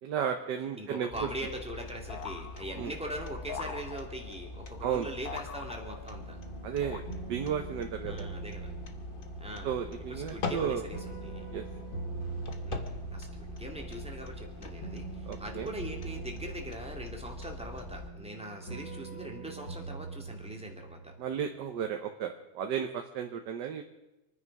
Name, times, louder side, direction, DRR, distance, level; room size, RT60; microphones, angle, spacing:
voice 1, 0.0-1.1 2.8-2.9 4.8-5.1 6.6-7.0 7.3-8.3 9.6-10.8 11.5-11.6 15.3-15.7 21.2-23.8, right 8 dB, 65° right, 5 dB, 1.5 m, -33 dB
voice 2, 0.7-6.4 8.0-8.7 9.4-9.7 10.1-11.5 12.6-21.1, right 1 dB, 5° right, 1 dB, 2.2 m, -42 dB
sound 1, 1.1-18.1, left 3 dB, 30° left, 1.2 m, -43 dB
sound 2, 2.1-3.0 3.5-4.4 5.3-6.3 6.8-7.5, left 7 dB, 60° left, 1.2 m, -43 dB
sound 3, 6.1-21.6, right 4 dB, 85° left, 5.2 m, -43 dB
27.0 x 9.9 x 5.3 m, 0.98 s
omnidirectional pair, 2.1 m